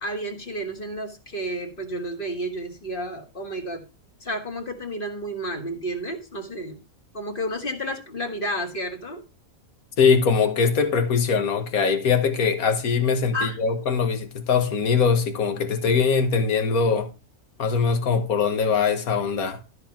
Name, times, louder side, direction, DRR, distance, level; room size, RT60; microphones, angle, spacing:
voice 1, 0.0-3.8 4.2-6.8 7.1-9.2 13.3-13.6, right 1 dB, 40° left, 1.8 m, -31 dB
voice 2, 10.0-17.1 17.6-19.6, left 5 dB, 80° left, 1.7 m, -22 dB
13.0 x 4.4 x 5.8 m
omnidirectional pair, 1.5 m